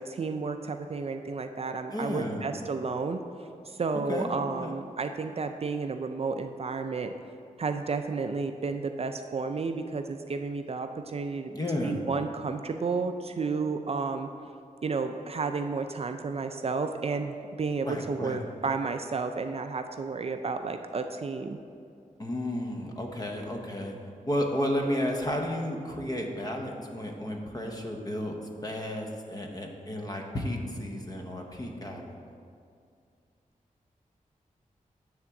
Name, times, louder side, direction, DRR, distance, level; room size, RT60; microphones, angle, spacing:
voice 1, 0.0-3.2 3.7-7.1 7.6-11.5 11.8-14.3 14.8-21.6, right 4 dB, 45° right, 7 dB, 0.4 m, -32 dB
voice 2, 1.9-2.4 4.1-4.3 4.6-4.7 11.5-12.0 17.8-18.4 22.2-23.9 24.3-28.3 28.6-32.2, left 1 dB, 25° left, 1 dB, 0.9 m, -32 dB
9.7 x 3.6 x 7.1 m, 2.4 s
wide cardioid pair, 135°, 14 cm